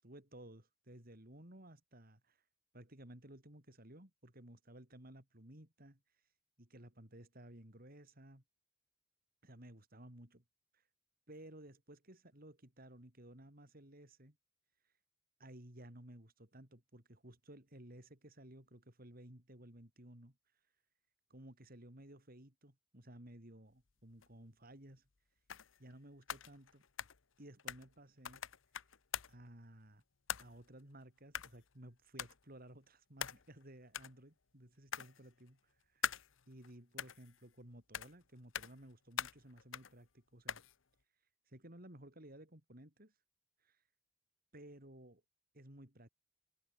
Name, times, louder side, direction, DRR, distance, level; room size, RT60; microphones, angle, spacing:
voice 1, 0.0-2.4 2.7-6.2 6.6-8.4 9.4-10.4 10.7-10.9 11.3-14.4 14.8-14.9 15.4-20.4 21.3-25.1 25.8-26.8 27.4-28.5 29.3-30.0 30.4-36.1 36.5-40.6 41.5-43.1 43.6-43.8 44.5-45.2 45.5-46.1, right 1 dB, 45° right, 4.6 m, -56 dB
sound 1, 24.2-24.3 25.5-25.9 26.2-28.0 28.2-29.5 30.3-30.8 31.3-31.7 32.2-32.4 33.2-33.6 33.9-34.2 34.9-35.5 36.0-36.7 37.0-37.6 37.9-38.2 38.5-38.9 39.2-40.0 40.5-40.8, left 8 dB, 75° left, 1.0 m, -44 dB
open air
head